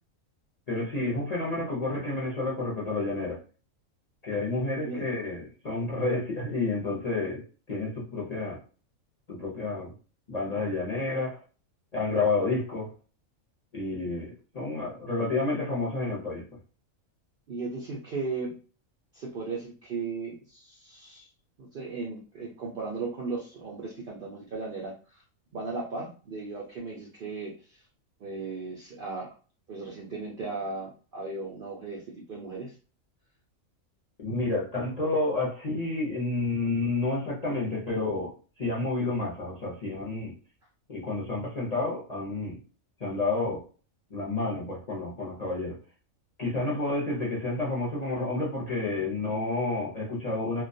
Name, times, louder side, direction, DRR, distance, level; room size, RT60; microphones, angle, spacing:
voice 1, 0.7-3.4 4.2-8.6 9.3-9.9 10.3-11.4 11.9-12.9 13.7-16.4 34.2-40.4 40.9-42.6 43.0-43.6 44.1-45.8 46.4-50.6, left 2 dB, 45° left, -5 dB, 0.5 m, -30 dB
voice 2, 17.5-18.6 19.1-21.3 21.6-25.2 25.5-27.8 28.2-29.3 29.7-32.8, right 4 dB, 65° right, -2 dB, 0.5 m, -36 dB
2.2 x 2.2 x 2.6 m, 0.37 s
omnidirectional pair, 1.4 m